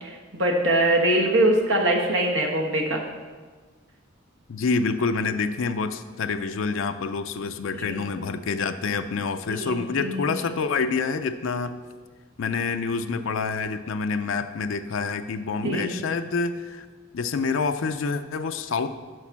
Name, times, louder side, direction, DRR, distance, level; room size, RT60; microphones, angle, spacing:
voice 1, 0.0-3.0 7.9-8.0 9.5-10.3 15.6-15.9, right 1 dB, 65° right, 1 dB, 1.2 m, -23 dB
voice 2, 4.5-11.8 12.4-16.9 17.1-18.9, left 4 dB, 75° left, 8 dB, 0.4 m, -27 dB
6.4 x 5.8 x 5.8 m, 1.5 s
head